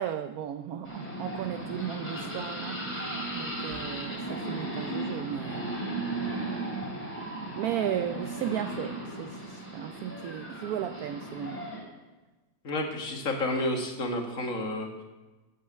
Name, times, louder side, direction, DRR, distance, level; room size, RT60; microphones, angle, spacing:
voice 1, 0.0-5.8 6.3-6.7 7.6-11.7, right 10 dB, 80° right, 9 dB, 0.8 m, -35 dB
sound 1, 0.9-11.8, right 2 dB, 5° left, 3.0 m, -36 dB
voice 2, 12.6-15.0, left 1 dB, 45° left, 3 dB, 1.9 m, -30 dB
9.6 x 8.7 x 7.4 m, 1.2 s
omnidirectional pair, 2.1 m